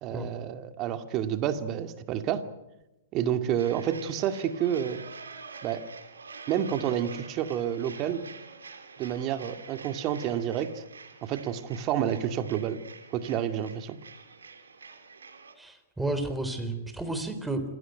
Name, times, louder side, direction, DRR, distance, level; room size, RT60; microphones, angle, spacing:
voice 1, 0.0-2.4 3.1-5.0 5.6-5.8 6.5-8.2 9.0-10.8 11.2-12.8 13.1-14.0, right 10 dB, 35° right, 9 dB, 2.2 m, -29 dB
sound 1, 3.6-15.5, right 4 dB, 85° right, 3.5 m, -47 dB
voice 2, 15.6-17.6, right 2 dB, 5° right, 8 dB, 3.9 m, -32 dB
27.0 x 17.0 x 9.2 m, 0.96 s
hypercardioid pair, 115°, 0 cm